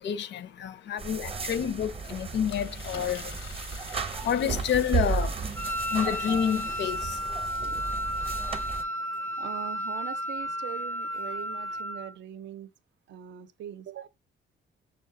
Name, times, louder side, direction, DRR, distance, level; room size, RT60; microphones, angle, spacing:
voice 1, 0.0-3.4 4.2-5.4 5.9-7.2, left 8 dB, 65° left, 0.5 m, -29 dB
sound 1, 1.0-8.8, right 5 dB, 30° right, 0.7 m, -34 dB
Engine, 2.4-7.7, left 7 dB, 85° left, 0.9 m, -49 dB
Wind instrument woodwind instrument, 5.6-12.2, equal, 10° left, 0.3 m, -33 dB
voice 2, 9.4-12.7 13.1-14.1, right 11 dB, 65° right, 0.5 m, -41 dB
6.4 x 2.3 x 3.6 m
cardioid pair, 90°, 20 cm